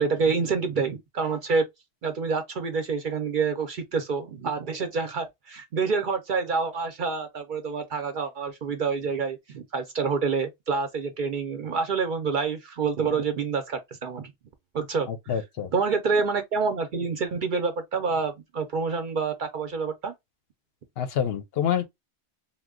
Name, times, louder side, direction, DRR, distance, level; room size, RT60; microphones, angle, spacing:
voice 1, 0.0-1.6 2.0-14.3 14.7-15.3 15.7-20.1, right 5 dB, 55° right, 0.6 m, -27 dB
voice 2, 15.1-15.7 21.0-21.9, left 8 dB, 65° left, 0.7 m, -27 dB
2.9 x 2.2 x 3.5 m
omnidirectional pair, 1.2 m